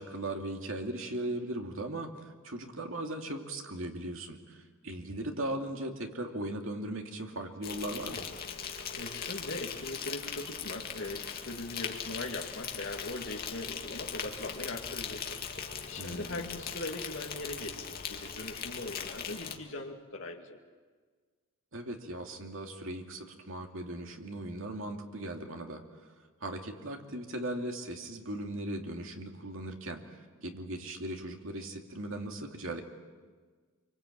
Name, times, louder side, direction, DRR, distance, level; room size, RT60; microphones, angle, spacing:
voice 1, 0.0-2.1 2.4-8.3 16.0-16.4 21.7-25.8 26.4-30.0 30.4-32.8, right 1 dB, 65° right, 3 dB, 2.8 m, -38 dB
Insect, 7.6-19.6, left 7 dB, 45° left, 2.2 m, -40 dB
voice 2, 8.6-20.6, left 2 dB, 60° left, 1 dB, 2.3 m, -40 dB
26.0 x 24.5 x 8.8 m, 1.5 s
head